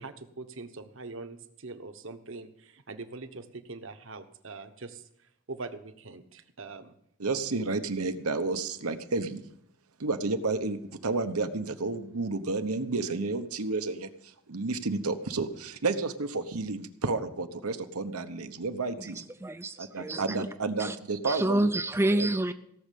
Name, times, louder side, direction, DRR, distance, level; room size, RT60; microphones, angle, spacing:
voice 1, 0.0-5.0 5.5-6.9, right 3 dB, 60° right, 9 dB, 1.1 m, -43 dB
voice 2, 7.2-9.4 10.0-19.2 19.8-21.7 22.2-22.3, right 3 dB, 85° right, 8 dB, 1.1 m, -31 dB
voice 3, 19.0-20.5 20.8-21.0 21.2-22.5, right 1 dB, 10° right, 9 dB, 0.4 m, -28 dB
17.5 x 6.5 x 8.4 m, 0.73 s
head